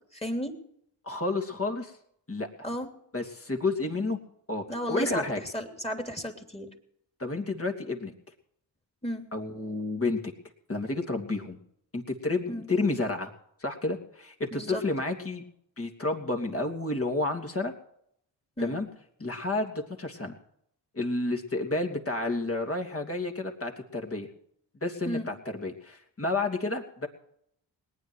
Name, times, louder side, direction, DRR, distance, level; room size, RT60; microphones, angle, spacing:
voice 1, 0.1-0.6 2.6-2.9 4.7-5.3 5.5-6.7 9.0-9.3 12.5-12.7 14.5-14.8 18.6-18.8 25.0-25.3, equal, 15° left, 4 dB, 3.2 m, -33 dB
voice 2, 1.0-1.9 2.3-2.5 3.1-4.2 4.5-5.4 7.2-8.1 9.3-10.3 10.7-11.6 11.9-13.3 13.6-15.4 15.8-17.7 18.6-18.9 19.2-20.4 20.9-24.3 24.8-27.1, left 2 dB, 30° left, 3 dB, 3.0 m, -30 dB
19.5 x 9.7 x 6.4 m, 0.72 s
cardioid pair, 55°, 43 cm